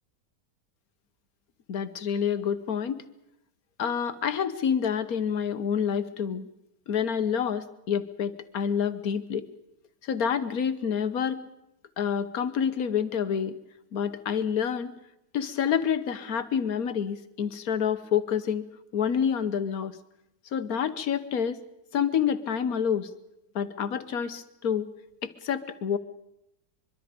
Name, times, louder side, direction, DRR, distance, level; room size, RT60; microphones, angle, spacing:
voice 1, 1.7-3.0 3.8-6.5 6.9-9.5 10.0-11.5 12.0-13.6 13.9-14.9 15.3-18.7 18.9-20.0 20.5-21.6 21.9-23.1 23.5-24.9 25.2-26.0, left 7 dB, 65° left, 12 dB, 1.5 m, -28 dB
23.5 x 23.5 x 5.2 m, 0.85 s
omnidirectional pair, 1.7 m